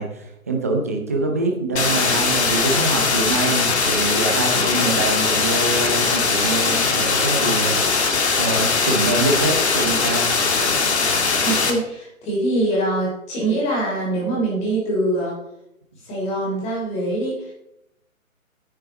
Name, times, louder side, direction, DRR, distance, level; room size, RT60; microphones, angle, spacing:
voice 1, 0.0-7.8 8.1-10.3, right 2 dB, 10° right, 1 dB, 0.6 m, -25 dB
sound 1, 1.8-11.7, left 4 dB, 50° left, 2.1 m, -20 dB
voice 2, 11.4-15.4 16.0-17.5, right 1 dB, 15° left, -4 dB, 3.5 m, -23 dB
10.0 x 9.6 x 4.3 m, 0.82 s
figure-of-eight pair, 150°, 43 cm